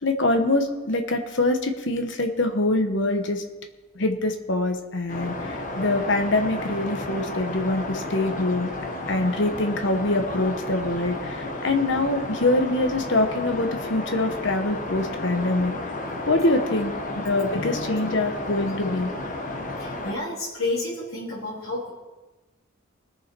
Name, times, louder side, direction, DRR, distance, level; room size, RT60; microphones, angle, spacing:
voice 1, 0.0-3.4 4.0-8.7 9.1-15.7 16.3-17.0 17.2-19.1, left 2 dB, 60° left, 6 dB, 1.1 m, -24 dB
sound 1, 5.1-20.1, left 1 dB, 40° left, 1.2 m, -32 dB
voice 2, 19.8-21.9, left 2 dB, 90° left, -7 dB, 3.3 m, -30 dB
21.0 x 7.1 x 4.6 m, 1.2 s
head